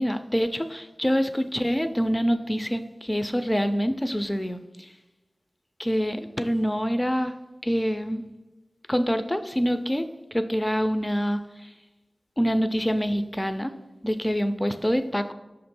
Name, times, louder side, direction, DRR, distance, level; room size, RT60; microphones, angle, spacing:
voice 1, 0.0-4.9 5.8-7.3 7.6-8.3 8.9-10.0 10.3-11.7 12.4-13.7 14.0-15.3, equal, 15° left, 9 dB, 0.4 m, -26 dB
6.3 x 2.9 x 5.2 m, 1.1 s
wide cardioid pair, 60°, 0 cm